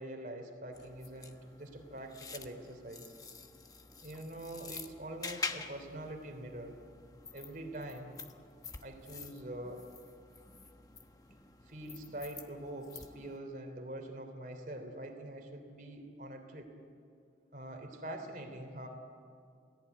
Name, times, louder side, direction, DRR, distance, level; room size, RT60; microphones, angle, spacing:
voice 1, 0.0-3.1 4.0-6.8 7.3-8.1 8.8-9.8 11.7-16.7 17.5-18.9, right 1 dB, 50° right, 5 dB, 3.3 m, -44 dB
sound 1, 0.7-13.4, left 4 dB, 20° left, 1.1 m, -47 dB
28.5 x 18.0 x 9.4 m, 2.3 s
head